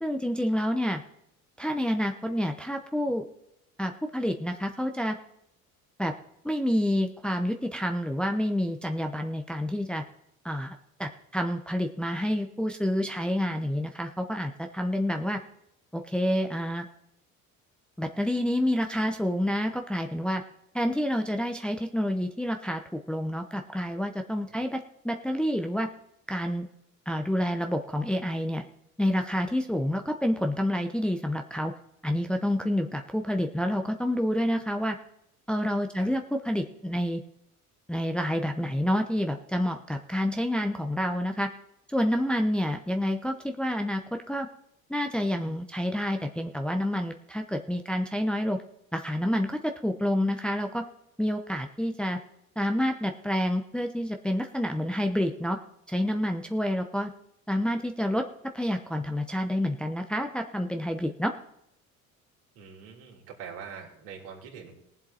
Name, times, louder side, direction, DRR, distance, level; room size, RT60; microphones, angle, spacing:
voice 1, 0.0-1.0 1.6-3.3 3.8-5.2 6.0-6.1 6.4-10.0 10.4-15.4 15.9-16.9 18.0-20.4 20.7-25.9 26.3-26.7 27.1-28.6 29.0-31.7 32.0-35.0 35.5-37.2 37.9-41.5 41.9-44.5 44.9-48.6 48.9-50.8 51.2-52.2 52.6-55.6 55.9-57.1 57.5-58.2 58.5-61.3, equal, ahead, 4 dB, 0.9 m, -28 dB
voice 2, 62.6-64.8, right 7 dB, 60° right, -1 dB, 3.3 m, -44 dB
22.0 x 7.6 x 2.9 m, 0.81 s
figure-of-eight pair, 55°, 42 cm